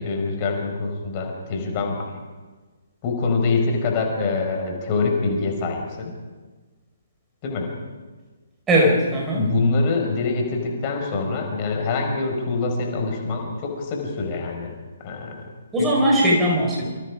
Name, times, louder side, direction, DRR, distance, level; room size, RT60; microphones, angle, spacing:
voice 1, 0.0-2.1 3.0-6.2 7.4-7.7 9.3-14.8 15.0-15.5 15.8-16.1, left 3 dB, 30° left, 2 dB, 5.3 m, -25 dB
voice 2, 8.7-9.5 15.7-16.9, equal, 10° right, -1 dB, 4.9 m, -19 dB
28.0 x 26.0 x 5.0 m, 1.3 s
figure-of-eight pair, 130°, 0 cm